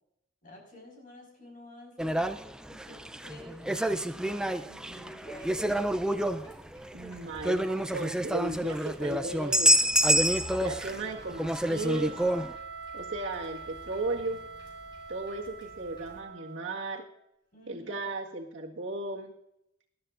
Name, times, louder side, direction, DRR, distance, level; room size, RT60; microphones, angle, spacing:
voice 1, 0.4-2.2 2.7-5.8 17.5-17.9, equal, 45° left, 1 dB, 5.2 m, -50 dB
sound 1, 2.0-11.0 11.3-12.5, equal, 5° right, 0.5 m, -28 dB
sound 2, 5.3-16.2, left 1 dB, 25° left, 4.2 m, -52 dB
voice 2, 6.9-9.7 10.6-12.1 12.9-14.4 15.1-17.0 17.7-19.3, right 2 dB, 85° right, 0 dB, 1.7 m, -35 dB
Wind instrument woodwind instrument, 9.2-17.2, right 5 dB, 55° right, 1.4 m, -46 dB
20.0 x 12.5 x 2.5 m, 0.80 s
head